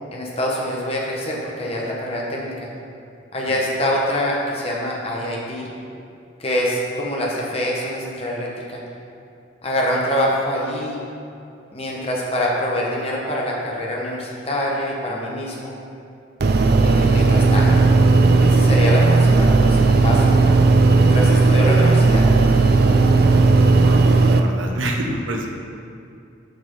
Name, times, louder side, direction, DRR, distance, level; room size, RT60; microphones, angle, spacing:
voice 1, 0.1-2.7 3.3-5.7 6.4-8.8 9.6-11.0 11.7-15.7 16.8-17.9 18.4-20.2 21.0-22.2, equal, 30° left, -3 dB, 1.2 m, -25 dB
sound 1, 16.4-24.4, right 3 dB, 55° right, 0.4 m, -15 dB
voice 2, 23.7-25.5, right 1 dB, 85° right, 1 dB, 0.9 m, -28 dB
6.5 x 6.0 x 5.3 m, 2.5 s
head